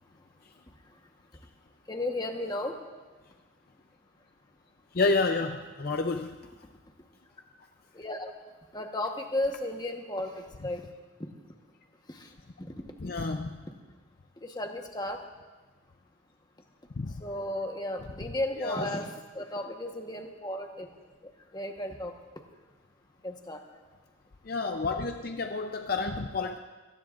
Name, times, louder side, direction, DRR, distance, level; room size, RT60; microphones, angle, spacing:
voice 1, 1.9-2.8 7.9-8.3 8.7-10.3 10.6-10.8 12.7-12.8 14.4-15.2 17.2-20.9 21.5-22.1 23.2-23.6, left 1 dB, 20° left, 3 dB, 1.2 m, -34 dB
voice 2, 4.9-6.4 13.0-13.6 17.0-17.2 18.6-18.9 24.5-26.6, left 3 dB, 50° left, 5 dB, 0.6 m, -29 dB
25.5 x 18.0 x 2.5 m, 1.3 s
head